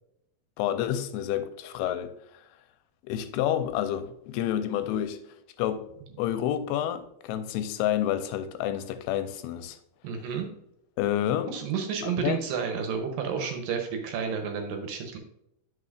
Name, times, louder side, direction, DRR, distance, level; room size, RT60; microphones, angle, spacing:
voice 1, 0.6-2.1 3.1-5.2 5.6-5.9 6.2-9.8 11.0-11.6 12.2-12.4, left 11 dB, 90° left, 2.6 m, -29 dB
voice 2, 10.0-10.5 11.5-15.2, right 6 dB, 75° right, 2.3 m, -31 dB
9.6 x 5.6 x 2.4 m
omnidirectional pair, 4.5 m